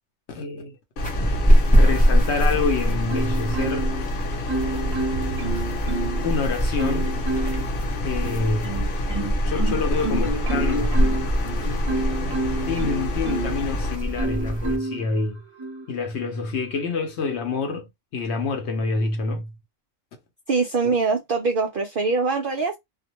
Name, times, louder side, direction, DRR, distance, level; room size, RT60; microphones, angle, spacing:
voice 1, 0.3-0.8 1.3-1.4 1.7-3.9 6.2-7.1 8.0-8.8 9.4-11.0 12.7-15.4 15.9-19.5, left 4 dB, 60° left, 0.8 m, -27 dB
sound 1, 1.0-14.0, left 1 dB, 85° left, 1.2 m, -30 dB
sound 2, 1.0-14.8, equal, 10° left, 0.4 m, -23 dB
Marimba xylophone, 3.1-4.1 4.5-6.3 6.8-7.7 8.2-13.7 14.2-15.0 15.6-15.8, right 2 dB, 30° right, 0.7 m, -29 dB
voice 2, 20.5-22.8, right 4 dB, 65° right, 0.5 m, -23 dB
2.4 x 2.1 x 2.9 m
omnidirectional pair, 1.4 m